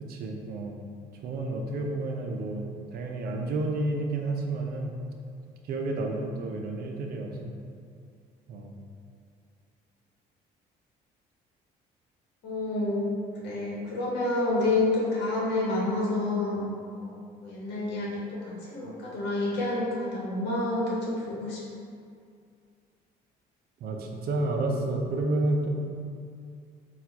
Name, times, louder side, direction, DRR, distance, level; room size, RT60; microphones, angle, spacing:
voice 1, 0.1-0.8 1.2-2.6 2.9-4.9 5.7-7.5 8.5-8.7 23.8-25.7, right 2 dB, 65° right, 2 dB, 0.6 m, -30 dB
voice 2, 12.4-16.6 17.0-17.1 17.4-21.6, left 2 dB, 85° left, -5 dB, 1.1 m, -29 dB
4.2 x 2.4 x 4.4 m, 2.3 s
cardioid pair, 110°, 17 cm